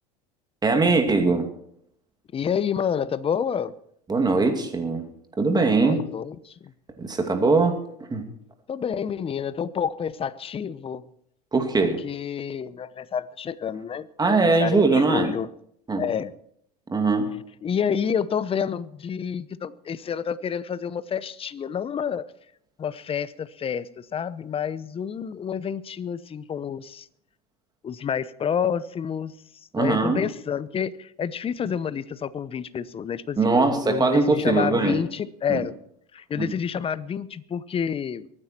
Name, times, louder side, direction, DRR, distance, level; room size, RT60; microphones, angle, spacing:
voice 1, 0.6-1.5 4.1-5.1 5.4-6.0 7.0-7.8 8.1-8.3 11.5-12.0 14.2-15.3 15.9-16.1 16.9-17.3 29.7-30.2 33.4-35.0 35.5-35.6 36.4-36.5, right 3 dB, 20° right, 5 dB, 2.5 m, -21 dB
voice 2, 2.3-3.7 5.8-6.7 8.7-11.0 11.8-15.5 16.0-16.3 17.6-22.3 22.8-27.1 27.8-29.3 29.8-35.7 36.1-38.3, left 7 dB, 30° left, 17 dB, 0.8 m, -29 dB
23.0 x 9.8 x 4.4 m, 0.70 s
hypercardioid pair, 85°, 20 cm